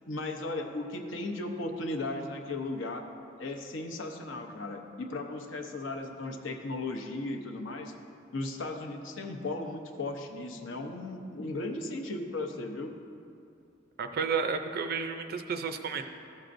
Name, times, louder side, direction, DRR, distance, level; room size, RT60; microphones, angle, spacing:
voice 1, 0.1-3.1 3.4-7.9 8.3-12.9, left 2 dB, 70° left, 4 dB, 0.7 m, -36 dB
voice 2, 14.0-16.1, right 5 dB, 50° right, 6 dB, 0.4 m, -32 dB
13.5 x 6.4 x 2.6 m, 2.5 s
head